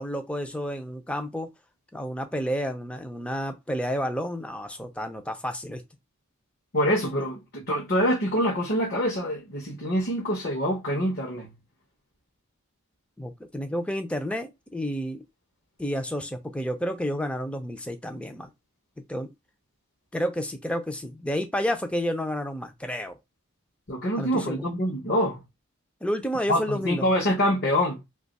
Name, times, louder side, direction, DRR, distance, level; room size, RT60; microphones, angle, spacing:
voice 1, 0.0-1.5 1.9-5.8 13.2-15.2 15.8-18.5 19.1-19.3 20.1-23.2 24.2-24.7 26.0-27.0, equal, 5° left, 0.4 m, -30 dB
voice 2, 6.7-11.5 23.9-25.4 26.5-28.0, equal, 50° left, 0.8 m, -25 dB
2.8 x 2.3 x 4.0 m
head